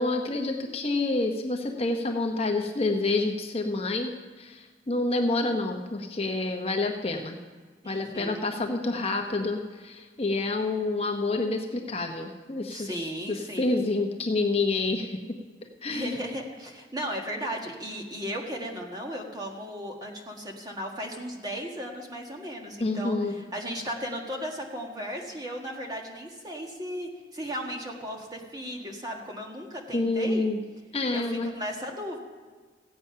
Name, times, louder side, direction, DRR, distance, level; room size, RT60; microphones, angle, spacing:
voice 1, 0.0-7.4 7.8-15.2 15.8-16.2 22.8-23.4 29.9-30.6 30.9-31.5, left 2 dB, 35° left, 3 dB, 0.9 m, -28 dB
voice 2, 7.8-8.5 12.7-13.9 15.9-23.2 23.5-30.5 31.1-32.2, equal, 25° right, 1 dB, 1.6 m, -36 dB
15.5 x 8.6 x 5.7 m, 1.5 s
head